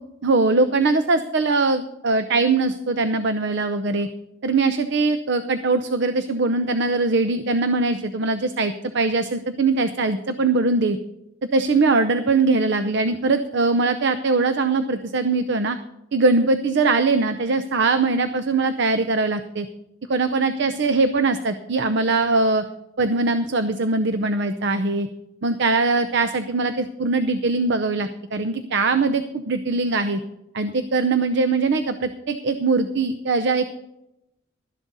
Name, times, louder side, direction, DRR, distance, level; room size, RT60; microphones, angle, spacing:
voice 1, 0.2-4.1 4.4-11.0 11.5-15.8 16.1-19.7 20.1-22.6 23.0-25.1 25.4-30.2 30.5-33.7, right 3 dB, 65° right, 9 dB, 0.7 m, -21 dB
12.5 x 11.0 x 4.0 m, 0.85 s
head